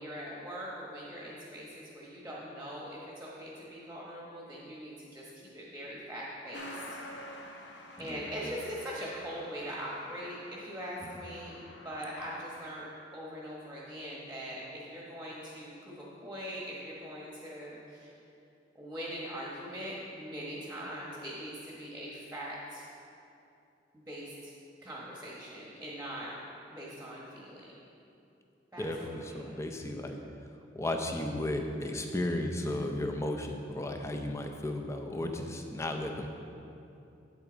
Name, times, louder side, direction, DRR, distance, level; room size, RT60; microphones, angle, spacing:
voice 1, 0.0-6.8 8.0-18.1 18.7-22.8 23.9-24.5 24.8-26.3 26.7-27.7 28.7-29.7, equal, 10° right, -5 dB, 1.1 m, -42 dB
Truck, 6.5-12.7, left 1 dB, 65° left, 0.9 m, -48 dB
voice 2, 8.0-8.5 28.8-30.2 30.7-36.3, left 1 dB, 15° left, 4 dB, 0.5 m, -34 dB
8.3 x 8.2 x 3.9 m, 2.7 s
head